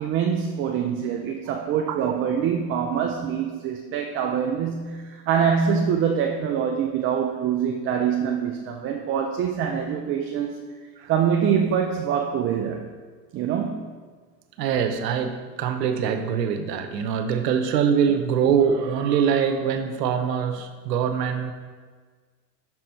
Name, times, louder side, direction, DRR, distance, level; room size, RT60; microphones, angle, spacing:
voice 1, 0.0-10.6 11.1-12.9 13.3-13.8, right 7 dB, 30° right, 2 dB, 0.4 m, -24 dB
voice 2, 14.6-21.5, right 7 dB, 85° right, 7 dB, 0.9 m, -23 dB
6.1 x 6.0 x 4.5 m, 1.5 s
supercardioid pair, 115°, 48 cm